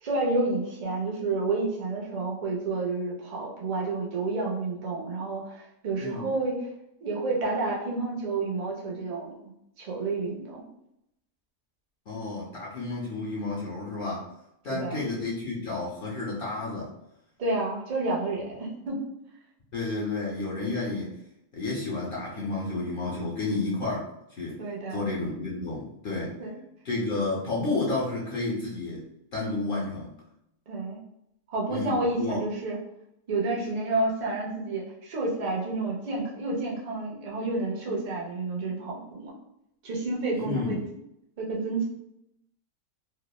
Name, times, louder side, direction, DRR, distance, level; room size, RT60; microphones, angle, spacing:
voice 1, 0.0-6.6 7.0-9.4 9.8-10.6 14.7-15.0 17.4-19.1 24.6-25.0 26.4-26.5 30.7-31.0 31.5-32.8 33.3-39.3 39.8-40.8 41.4-41.8, right 3 dB, 85° right, -3 dB, 0.3 m, -30 dB
voice 2, 12.1-14.3 14.6-16.9 19.7-21.2 21.5-24.6 24.9-26.4 26.8-30.2 31.7-32.4 40.3-40.8, left 3 dB, 65° left, -4 dB, 0.5 m, -31 dB
3.0 x 2.1 x 2.2 m, 0.80 s
omnidirectional pair, 1.6 m